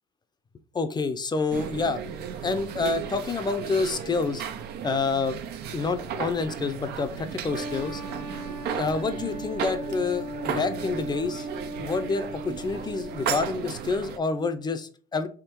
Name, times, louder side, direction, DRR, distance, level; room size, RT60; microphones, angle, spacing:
voice 1, 0.7-2.0 2.4-4.4 4.8-5.4 5.7-8.0 8.7-11.5 11.7-15.3, left 4 dB, 25° left, 10 dB, 0.6 m, -28 dB
sound 1, 1.5-14.2, right 7 dB, 75° right, 0.6 m, -35 dB
sound 2, 7.5-13.8, right 1 dB, 55° right, 1.1 m, -37 dB
3.7 x 3.2 x 4.4 m, 0.41 s
cardioid pair, 110°, 17 cm